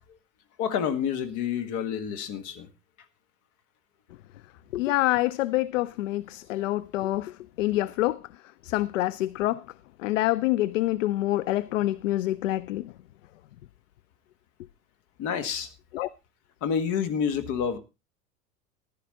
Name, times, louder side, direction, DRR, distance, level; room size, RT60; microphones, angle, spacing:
voice 1, 0.6-2.7 15.2-15.7 16.6-17.8, left 7 dB, 40° left, 1.8 m, -28 dB
voice 2, 4.7-7.3 7.6-8.2 8.6-9.6 10.0-12.8 15.9-16.1, left 16 dB, 55° left, 0.6 m, -26 dB
15.0 x 11.0 x 3.9 m
figure-of-eight pair, 85°, 47 cm